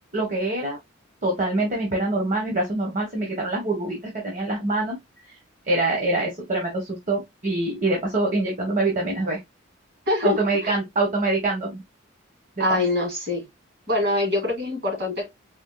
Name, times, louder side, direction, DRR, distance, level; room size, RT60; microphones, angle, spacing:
voice 1, 0.1-0.8 1.2-5.0 5.3-5.4 5.6-9.4 10.2-11.8 12.7-12.8, right 2 dB, 40° right, 1.0 m, -25 dB
voice 2, 10.1-10.4 10.6-10.7 12.6-13.5 13.9-15.3, left 2 dB, 55° right, 2.4 m, -24 dB
4.4 x 2.7 x 2.3 m
head